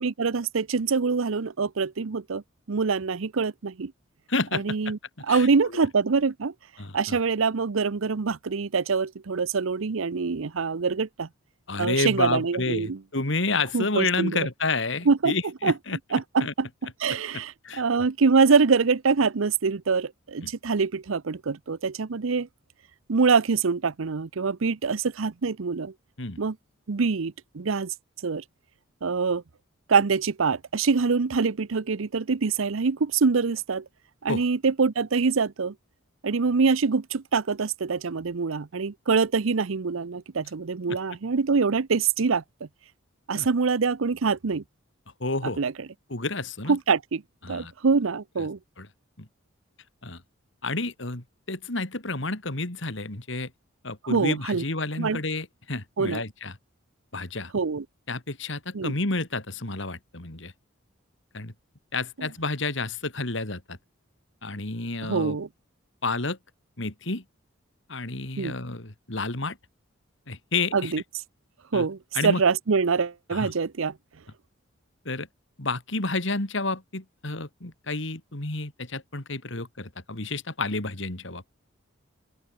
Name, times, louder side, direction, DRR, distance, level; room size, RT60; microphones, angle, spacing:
voice 1, 0.0-2.4 2.7-3.9 4.5-5.0 5.3-6.5 6.9-11.3 11.8-13.0 13.7-14.5 15.1-15.3 15.6-15.7 16.1-16.7 17.0-22.5 23.1-25.9 26.4-26.6 26.9-27.9 28.2-28.4 29.0-29.4 29.9-33.8 34.2-35.7 36.2-42.4 43.3-44.6 45.4-45.7 46.7-47.2 47.5-48.6 54.0-54.6 55.0-55.2 56.0-56.2 57.5-57.8 58.7-59.0 62.2-62.3 65.0-65.5 68.4-68.5 70.7-71.0 71.7-73.9, right 5 dB, 80° right, 0.7 m, -24 dB
voice 2, 4.3-4.9 5.3-5.5 5.7-5.8 6.8-7.2 11.7-16.0 16.4-16.5 17.6-17.8 20.4-20.5 26.2-26.4 34.3-34.4 40.9-41.0 43.3-43.5 45.2-45.6 46.1-46.8 47.4-47.7 48.8-48.9 49.2-49.3 50.0-50.2 50.6-53.5 53.8-56.5 57.1-57.5 58.1-60.5 61.3-61.5 61.9-63.8 64.4-65.4 66.0-66.4 66.8-67.2 67.9-69.6 70.3-70.9 71.7-71.9 72.1-72.4 73.3-73.5 75.0-75.3 75.6-81.4, left 3 dB, 65° left, 2.9 m, -30 dB
open air
head